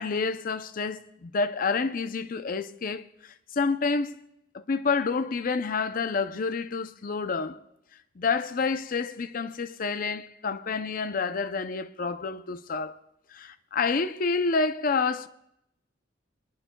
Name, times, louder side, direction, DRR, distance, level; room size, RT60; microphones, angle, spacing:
voice 1, 0.0-4.2 4.5-7.6 8.2-13.0 13.3-15.3, left 4 dB, 50° left, 0.5 m, -28 dB
23.0 x 20.0 x 2.3 m
head